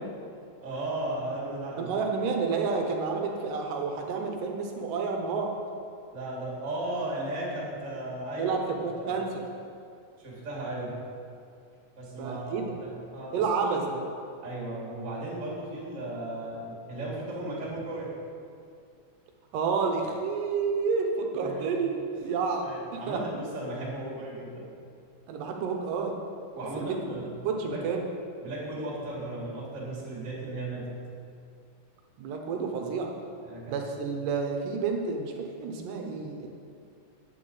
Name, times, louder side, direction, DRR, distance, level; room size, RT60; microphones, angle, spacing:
voice 1, 0.6-1.9 6.1-8.6 9.0-9.1 10.2-11.0 12.0-13.5 14.4-18.1 21.4-21.7 22.6-24.7 26.5-27.4 27.7-27.9 28.4-30.9 33.4-33.7, right 1 dB, 25° right, -6 dB, 2.0 m, -36 dB
voice 2, 1.8-5.5 8.4-9.4 12.2-12.7 13.3-14.1 19.5-23.2 25.3-26.2 26.8-27.2 27.4-28.0 32.2-33.1 33.7-36.5, right 5 dB, 75° right, 3 dB, 2.3 m, -30 dB
9.1 x 8.1 x 3.9 m, 2.4 s
omnidirectional pair, 3.9 m